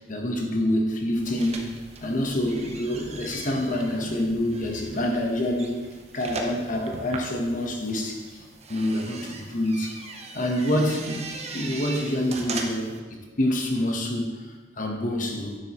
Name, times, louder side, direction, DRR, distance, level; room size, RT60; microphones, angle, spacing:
voice 1, 0.0-1.7 2.0-5.8 6.1-8.4 8.7-10.0 10.3-13.0 13.4-15.6, left 1 dB, 45° left, 2 dB, 1.1 m, -27 dB
sound 1, 1.1-13.0, right 3 dB, 35° right, 0.8 m, -39 dB
9.8 x 7.4 x 3.0 m, 1.3 s
head